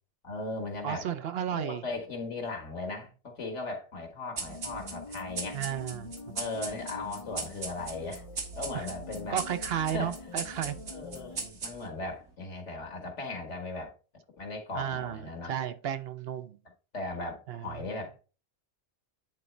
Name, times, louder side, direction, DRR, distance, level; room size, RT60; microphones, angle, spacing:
voice 1, 0.2-1.1 1.5-5.6 6.3-8.2 8.6-9.4 9.8-10.1 10.9-13.9 14.4-15.5 16.9-18.2, left 3 dB, 85° left, 2.0 m, -37 dB
voice 2, 0.8-1.8 5.5-6.3 8.7-8.9 9.3-10.8 14.7-15.2 15.5-16.6 17.5-17.9, right 9 dB, 65° right, 0.8 m, -33 dB
sound 1, 4.4-12.1, right 4 dB, 90° right, 1.7 m, -39 dB
sound 2, 4.5-11.5, left 3 dB, 40° left, 0.5 m, -45 dB
9.6 x 4.0 x 3.2 m
omnidirectional pair, 1.2 m